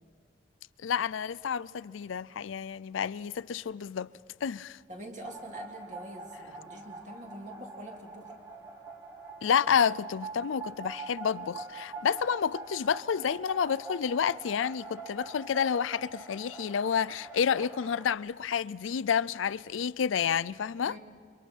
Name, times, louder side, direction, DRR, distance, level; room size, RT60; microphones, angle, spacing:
voice 1, 0.8-4.1 4.4-4.8 9.4-21.0, left 7 dB, 90° left, 0.4 m, -29 dB
voice 2, 4.9-8.3 20.8-21.0, equal, 40° right, 2.4 m, -45 dB
sound 1, 5.2-18.1, right 3 dB, 15° right, 1.4 m, -44 dB
29.5 x 24.0 x 4.6 m
head